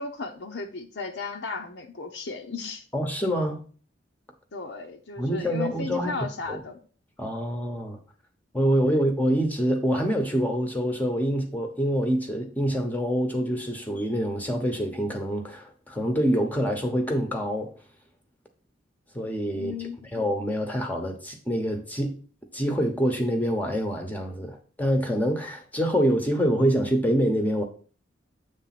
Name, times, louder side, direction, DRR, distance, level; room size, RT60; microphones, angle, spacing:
voice 1, 0.0-2.8 4.5-6.8 19.5-20.1, left 4 dB, 65° left, 0.7 m, -35 dB
voice 2, 2.9-3.6 5.2-6.1 6.5-6.6 7.2-8.0 8.5-17.7 19.1-19.8 20.1-22.1 22.5-27.6, equal, 10° left, 0.9 m, -26 dB
8.1 x 3.4 x 5.8 m
head